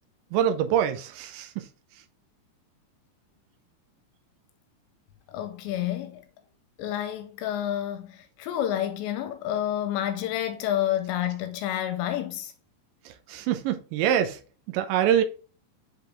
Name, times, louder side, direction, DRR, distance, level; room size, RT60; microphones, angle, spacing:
voice 1, 0.3-1.7 13.3-14.4 14.7-15.2, right 10 dB, 85° right, 3.0 m, -25 dB
voice 2, 5.3-6.2 6.8-12.5, left 11 dB, 85° left, 2.9 m, -29 dB
8.0 x 3.9 x 3.4 m
omnidirectional pair, 5.1 m